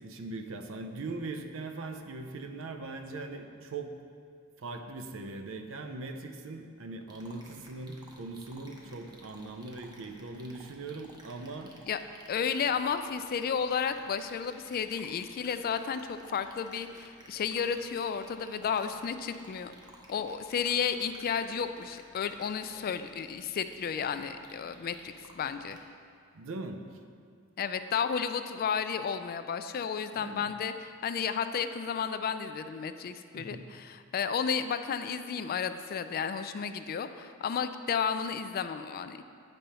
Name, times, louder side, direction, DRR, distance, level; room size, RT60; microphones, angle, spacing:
voice 1, 0.0-4.0 4.6-11.7 26.3-26.9 30.1-30.5 33.3-33.7, right 3 dB, 65° right, 6 dB, 0.6 m, -40 dB
sound 1, 7.1-25.8, right 1 dB, 20° right, 0.9 m, -55 dB
voice 2, 12.3-19.7 20.1-25.8 27.6-39.3, left 7 dB, 45° left, 10 dB, 0.3 m, -32 dB
9.0 x 5.4 x 4.3 m, 2.3 s
head